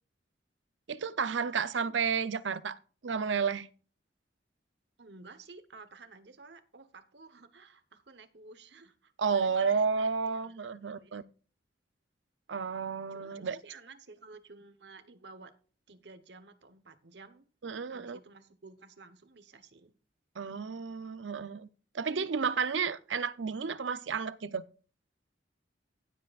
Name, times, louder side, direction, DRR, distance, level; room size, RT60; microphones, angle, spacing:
voice 1, 0.9-3.7 9.2-11.2 12.5-13.6 17.6-18.2 20.4-21.7 21.9-24.6, right 5 dB, 90° right, 0.6 m, -32 dB
voice 2, 5.0-9.9 10.2-11.3 13.1-15.5 15.9-17.5 17.9-19.9, right 3 dB, 65° right, 1.1 m, -53 dB
16.0 x 7.7 x 2.5 m
head